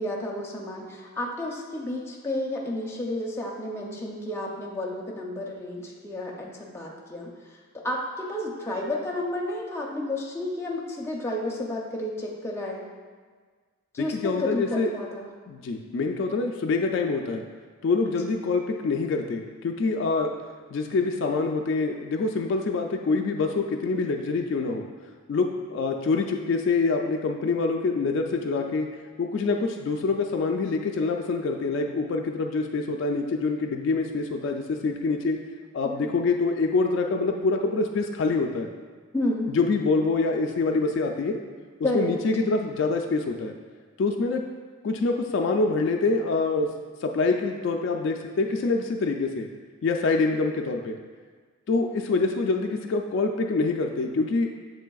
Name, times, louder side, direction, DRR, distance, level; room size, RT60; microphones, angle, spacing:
voice 1, 0.0-7.3 7.8-12.8 13.9-15.3 18.1-18.2 35.8-36.1 39.1-39.5 41.8-42.1, left 1 dB, 10° left, -3 dB, 0.5 m, -31 dB
voice 2, 14.0-14.9 15.5-17.5 17.8-20.4 20.7-24.9 25.3-28.9 29.2-35.4 35.7-38.7 39.5-41.4 41.9-43.6 44.0-44.4 44.8-46.7 47.0-49.5 49.8-51.0 51.7-54.5, left 3 dB, 60° left, 3 dB, 0.3 m, -25 dB
7.3 x 3.2 x 2.3 m, 1.5 s
head